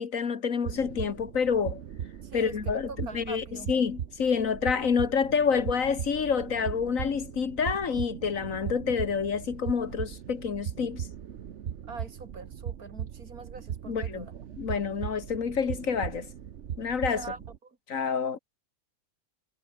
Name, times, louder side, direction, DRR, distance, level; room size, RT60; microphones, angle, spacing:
voice 1, 0.0-1.8 2.3-11.1 13.9-14.3 14.6-16.3 16.8-17.3 17.9-18.4, left 6 dB, 65° left, 1.9 m, -28 dB
sound 1, 0.6-17.6, right 9 dB, 55° right, 1.1 m, -38 dB
voice 2, 2.3-3.8 11.9-14.3 17.2-17.8, right 4 dB, 80° right, 3.3 m, -43 dB
omnidirectional pair, 1.5 m